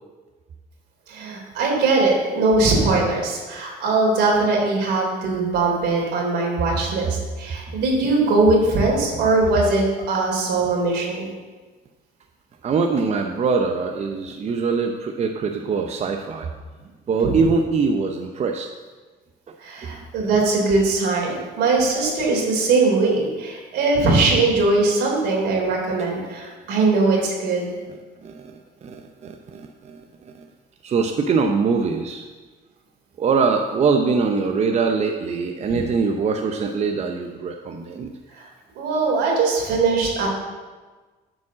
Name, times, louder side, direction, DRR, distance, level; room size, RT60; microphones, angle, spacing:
voice 1, 1.1-11.3 17.2-17.4 19.6-27.7 38.3-38.5 38.7-40.3, right 3 dB, 80° right, -1 dB, 3.3 m, -20 dB
voice 2, 12.6-16.5 17.1-18.7 19.5-19.6 19.8-20.0 28.2-30.4 30.8-32.2 33.2-38.1, right 5 dB, 40° right, 4 dB, 0.8 m, -23 dB
9.7 x 5.2 x 7.4 m, 1.3 s
cardioid pair, 110°, 17 cm